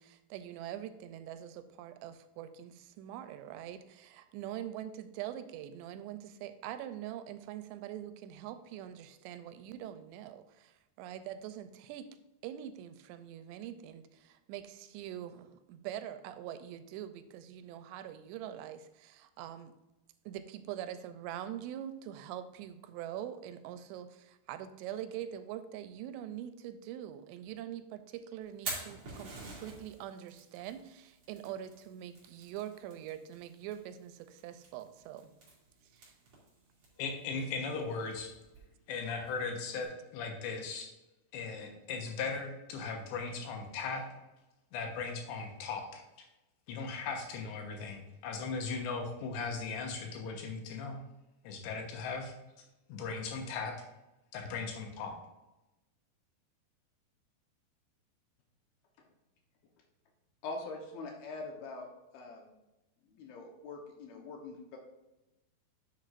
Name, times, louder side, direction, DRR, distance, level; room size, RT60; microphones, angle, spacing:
voice 1, 0.0-12.1 12.4-19.7 20.3-35.3 35.9-36.1, right 11 dB, 90° right, 10 dB, 2.8 m, -44 dB
Fire, 28.4-39.8, right 3 dB, 35° right, 3.0 m, -49 dB
voice 2, 37.0-38.3 38.9-40.9 41.3-44.1 44.7-46.0 46.7-51.0 51.4-52.3 52.9-53.8 54.3-55.2, left 4 dB, 90° left, 3 dB, 3.4 m, -38 dB
voice 3, 60.4-61.9 62.1-62.5 63.0-64.8, left 3 dB, 70° left, 1 dB, 2.7 m, -43 dB
10.5 x 6.8 x 2.5 m, 0.99 s
omnidirectional pair, 4.9 m